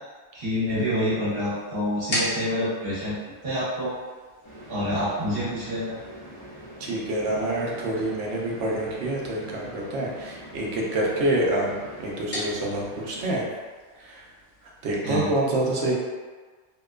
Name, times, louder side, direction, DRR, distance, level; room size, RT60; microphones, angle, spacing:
voice 1, 0.3-3.9 4.7-5.9 15.0-15.3, equal, 55° right, -11 dB, 1.3 m, -27 dB
sound 1, 0.6-14.9, left 1 dB, 60° left, 1.0 m, -40 dB
sound 2, 4.4-13.4, right 1 dB, 25° left, 0.5 m, -44 dB
voice 2, 6.8-13.5 14.0-14.2 14.8-15.9, right 1 dB, 80° right, -3 dB, 0.9 m, -27 dB
2.8 x 2.1 x 2.3 m, 1.4 s
omnidirectional pair, 1.2 m